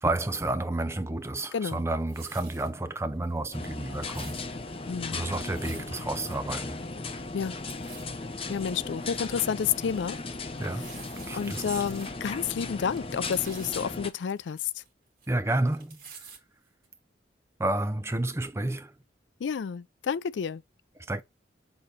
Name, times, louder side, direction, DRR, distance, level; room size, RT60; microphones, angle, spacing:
voice 1, 0.0-4.4 5.1-6.8 10.6-10.9 11.3-11.8 15.3-16.0 17.6-18.9 21.1-21.2, right 2 dB, 15° right, 0.6 m, -30 dB
voice 2, 1.5-1.8 4.9-5.2 7.3-7.5 8.5-10.2 11.3-14.7 19.4-20.6, left 7 dB, 80° left, 0.4 m, -30 dB
sound 1, 1.7-2.7 3.2-3.4 3.6-4.4 5.4-5.9 6.3-6.4 6.7-6.8 7.0-7.4 7.7-8.0 8.6-8.7 9.3-9.4 10.5-12.1 12.5-12.6 12.9-13.8 14.3-15.3 15.5-16.4 16.8-16.9, right 6 dB, 55° right, 2.3 m, -49 dB
sound 2, 3.5-14.1, left 3 dB, 30° left, 0.8 m, -37 dB
6.9 x 3.9 x 4.0 m
head